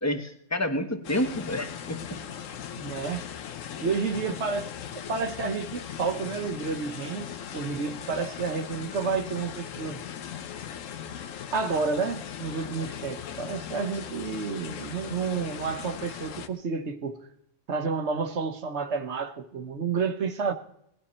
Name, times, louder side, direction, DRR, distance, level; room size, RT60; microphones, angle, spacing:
voice 1, 0.0-2.2, left 1 dB, 15° left, 1.1 m, -29 dB
sound 1, 1.0-16.5, left 8 dB, 70° left, 1.1 m, -39 dB
voice 2, 2.8-3.3 3.8-4.7 4.9-10.0 11.5-17.2 17.7-20.5, right 5 dB, 55° right, 1.2 m, -30 dB
19.0 x 12.0 x 4.3 m
omnidirectional pair, 1.4 m